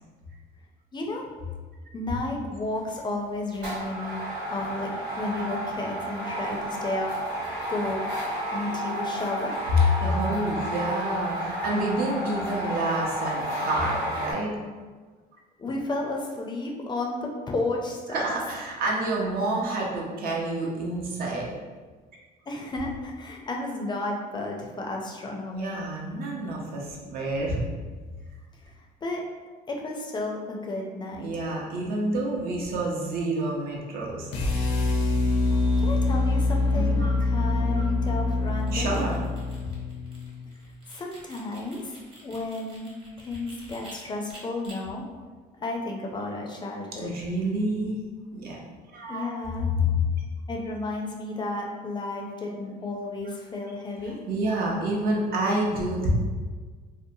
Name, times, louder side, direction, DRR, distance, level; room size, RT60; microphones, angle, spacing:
voice 1, 0.9-1.3 1.9-4.2 4.5-7.1 7.7-9.5 15.6-18.3 22.5-25.8 29.0-29.2 29.7-31.3 35.8-38.9 40.9-42.0 42.2-42.9 43.2-45.0 45.6-47.1 49.1-49.7 50.5-54.2, left 2 dB, 25° left, -1 dB, 0.4 m, -32 dB
sound 1, 2.7-3.0 3.5-14.3, equal, 90° right, 1.2 m, -32 dB
voice 2, 9.8-14.5 18.1-21.5 25.5-27.6 31.2-34.3 36.7-37.2 37.7-37.8 38.7-39.2 47.0-48.0 48.3-48.6 48.9-49.3 49.7-50.0 52.5-52.6 54.0-56.1, equal, 60° right, -2 dB, 0.6 m, -28 dB
sound 2, 34.3-40.5, left 3 dB, 90° left, 0.5 m, -25 dB
sound 3, 38.4-43.9 44.3-44.7, right 1 dB, 30° right, 1.0 m, -50 dB
2.7 x 2.1 x 2.6 m, 1.4 s
cardioid pair, 110°, 17 cm